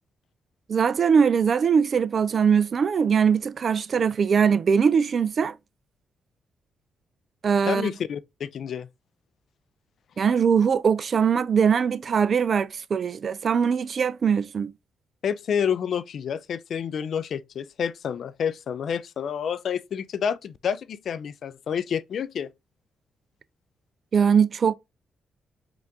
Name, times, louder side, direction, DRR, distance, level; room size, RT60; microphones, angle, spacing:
voice 1, 0.7-5.6 7.4-7.9 10.2-14.7 24.1-24.7, right 6 dB, 55° right, 0.3 m, -21 dB
voice 2, 7.7-8.9 15.2-22.5, left 7 dB, 65° left, 0.4 m, -29 dB
4.7 x 2.5 x 3.5 m
supercardioid pair, 55°, 0 cm